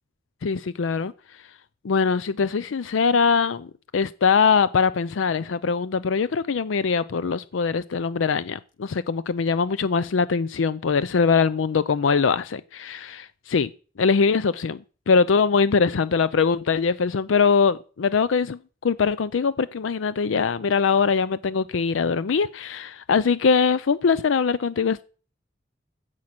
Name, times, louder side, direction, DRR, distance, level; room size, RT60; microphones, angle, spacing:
voice 1, 0.4-1.1 1.8-3.7 3.9-13.7 14.0-25.0, left 5 dB, 90° left, 0.5 m, -22 dB
16.0 x 6.4 x 5.9 m
head